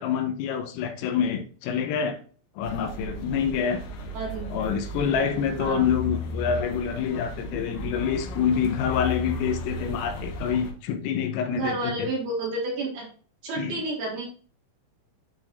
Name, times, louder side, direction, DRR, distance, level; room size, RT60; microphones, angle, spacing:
voice 1, 0.0-2.2 2.6-3.8 4.5-12.1 13.6-13.8, left 7 dB, 85° left, 3.4 m, -27 dB
sound 1, 2.6-10.7, left 1 dB, 70° left, 2.7 m, -35 dB
voice 2, 4.1-4.5 5.6-5.9 11.5-13.1 13.4-14.2, right 2 dB, 60° right, 3.1 m, -30 dB
12.5 x 4.6 x 2.5 m
omnidirectional pair, 6.0 m